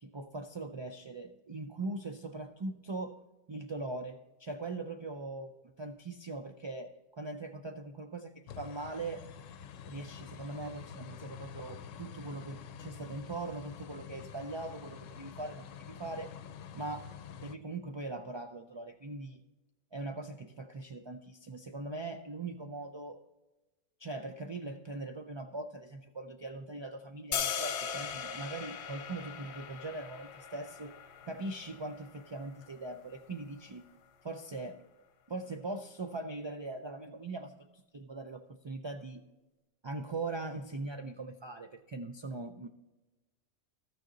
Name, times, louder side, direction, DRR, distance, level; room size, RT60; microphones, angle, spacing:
voice 1, 0.0-3.2 3.5-5.5 5.8-9.3 9.8-16.4 16.7-19.4 19.9-23.2 24.0-30.9 31.3-33.9 34.2-34.8 35.3-39.2 39.8-42.7, right 2 dB, 50° right, 5 dB, 0.3 m, -41 dB
sound 1, 8.5-17.6, left 8 dB, 90° left, 1.0 m, -48 dB
sound 2, 27.3-33.4, left 7 dB, 65° left, 1.0 m, -39 dB
13.5 x 6.5 x 3.9 m, 1.1 s
omnidirectional pair, 1.3 m